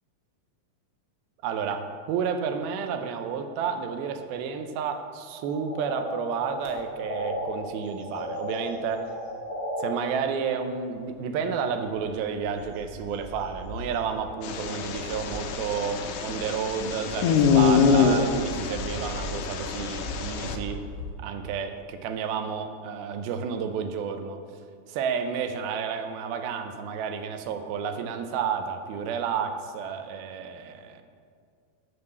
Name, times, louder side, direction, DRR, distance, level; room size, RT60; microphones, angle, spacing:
voice 1, 1.4-9.1 9.8-20.8 21.2-24.4 24.9-31.0, right 6 dB, 85° right, 7 dB, 2.6 m, -31 dB
sound 1, 5.4-7.4 7.8-9.9, left 1 dB, 10° right, 1.7 m, -35 dB
sound 2, 6.6-6.7 7.2-7.5 7.8-9.3 9.9-10.0 11.7-21.1, equal, 10° left, 1.5 m, -40 dB
sound 3, 14.4-20.6, left 6 dB, 75° left, 2.0 m, -25 dB
9.7 x 5.6 x 7.8 m, 2.2 s
omnidirectional pair, 4.3 m